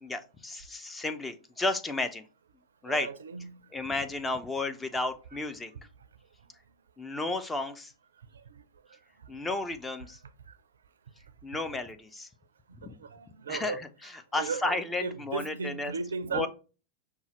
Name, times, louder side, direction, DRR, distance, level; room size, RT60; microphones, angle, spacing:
voice 1, 0.0-2.2 2.8-3.1 3.7-5.7 7.0-7.9 9.3-10.2 11.4-12.3 12.8-12.9 13.5-15.9 16.3-16.5, left 2 dB, 10° left, 0.5 m, -33 dB
voice 2, 2.9-3.6 13.0-13.8 14.4-16.5, right 4 dB, 70° right, 0.4 m, -35 dB
5.4 x 2.2 x 3.0 m
figure-of-eight pair, 90°, 0 cm